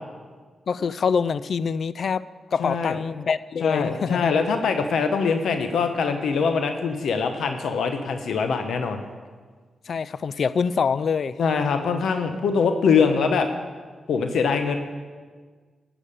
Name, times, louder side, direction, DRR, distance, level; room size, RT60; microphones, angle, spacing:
voice 1, 0.7-4.4 9.9-11.4, left 6 dB, 65° left, 17 dB, 0.3 m, -25 dB
voice 2, 2.6-3.0 3.6-9.0 11.4-13.5 14.1-14.8, left 5 dB, 80° left, 7 dB, 0.9 m, -23 dB
12.0 x 7.2 x 8.5 m, 1.5 s
cardioid pair, 65°, 0 cm